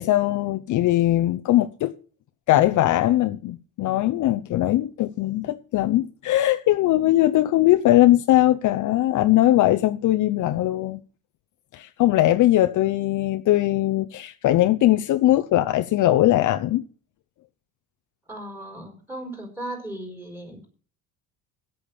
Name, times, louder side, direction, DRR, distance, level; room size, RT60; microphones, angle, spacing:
voice 1, 0.0-1.9 2.5-11.0 11.7-16.8, left 14 dB, 50° left, 0.7 m, -20 dB
voice 2, 18.3-20.7, right 1 dB, 5° right, 4.7 m, -36 dB
8.7 x 8.4 x 7.2 m
cardioid pair, 145°, 39 cm